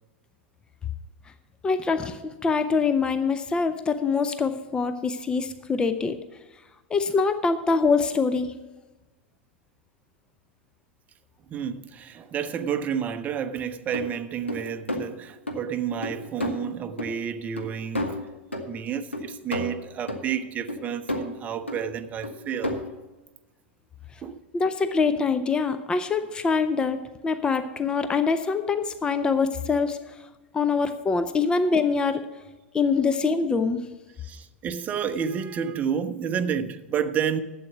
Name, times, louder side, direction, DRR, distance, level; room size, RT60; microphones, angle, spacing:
voice 1, 1.6-6.2 6.9-8.5 24.5-30.0 30.5-32.2 32.7-33.8, left 4 dB, 15° left, 0.6 m, -24 dB
voice 2, 11.5-18.2 18.7-22.8 24.2-24.4 34.2-37.4, right 8 dB, 25° right, 0.7 m, -30 dB
sound 1, 13.9-14.0 14.5-15.0 15.5-15.6 16.0-16.6 17.0-17.1 17.6-17.7 18.0-18.8 19.1-20.2 20.7-21.3 21.7-21.8 22.2-23.0, left 1 dB, 85° left, 1.4 m, -31 dB
11.5 x 7.9 x 6.0 m
figure-of-eight pair, 90°, 6 cm